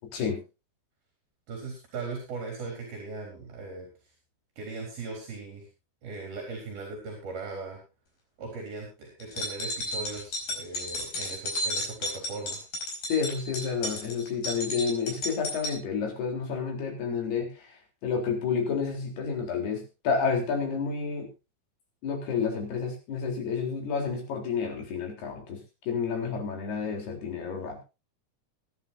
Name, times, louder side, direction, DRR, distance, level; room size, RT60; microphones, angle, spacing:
voice 1, 1.5-3.9 4.6-5.7 6.0-7.8 8.4-12.6, right 3 dB, 70° right, 1 dB, 5.6 m, -39 dB
sound 1, 9.2-15.8, left 1 dB, 70° left, 6.8 m, -33 dB
voice 2, 13.1-17.5 18.0-21.3 22.0-25.6 25.9-27.8, left 5 dB, 90° left, 2 dB, 5.8 m, -30 dB
23.5 x 10.0 x 2.7 m, 0.29 s
omnidirectional pair, 4.4 m